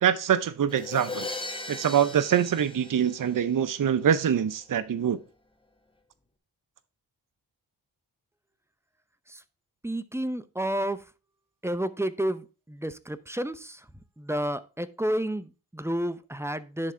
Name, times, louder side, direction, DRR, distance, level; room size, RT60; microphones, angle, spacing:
voice 1, 0.0-1.3 1.7-5.2, right 8 dB, 50° right, 12 dB, 0.7 m, -24 dB
Crash cymbal, 0.7-3.6, left 2 dB, 10° left, 1.4 m, -38 dB
voice 2, 9.8-11.0 11.6-13.8 14.2-16.9, right 1 dB, 5° right, 13 dB, 0.7 m, -30 dB
10.5 x 3.7 x 4.3 m, 0.33 s
cardioid pair, 55°, 42 cm